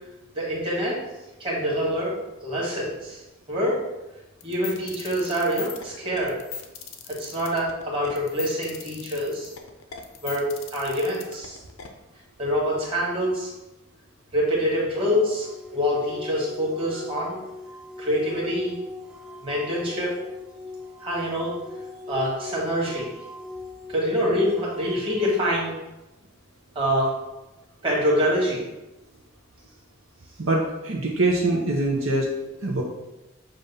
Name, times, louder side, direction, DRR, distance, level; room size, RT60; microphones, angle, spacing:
voice 1, 0.4-1.0 1.4-2.1 2.4-3.2 3.5-3.8 4.4-6.4 7.1-9.5 10.2-11.6 12.4-13.5 14.3-15.5 15.7-17.4 18.0-18.8 19.4-20.1 21.0-21.5 22.1-23.1 23.9-25.7 26.8-27.1 27.8-28.6, equal, 25° right, -5 dB, 1.9 m, -25 dB
sound 1, 4.4-11.9, left 8 dB, 80° left, 0.7 m, -39 dB
sound 2, 14.9-25.6, left 3 dB, 5° right, 0.3 m, -40 dB
voice 2, 30.4-32.3 32.6-32.8, right 2 dB, 70° right, -2 dB, 0.9 m, -23 dB
7.4 x 2.6 x 5.5 m, 1.0 s
head